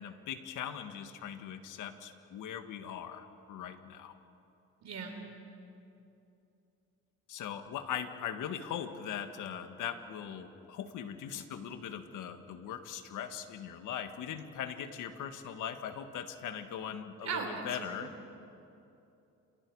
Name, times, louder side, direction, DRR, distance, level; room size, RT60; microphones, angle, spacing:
voice 1, 0.0-4.2 7.3-18.1, left 9 dB, 85° left, 7 dB, 1.8 m, -40 dB
voice 2, 4.8-5.2 17.2-18.0, right 5 dB, 60° right, 4 dB, 4.0 m, -38 dB
29.5 x 27.5 x 4.8 m, 2.7 s
cardioid pair, 90°, 30 cm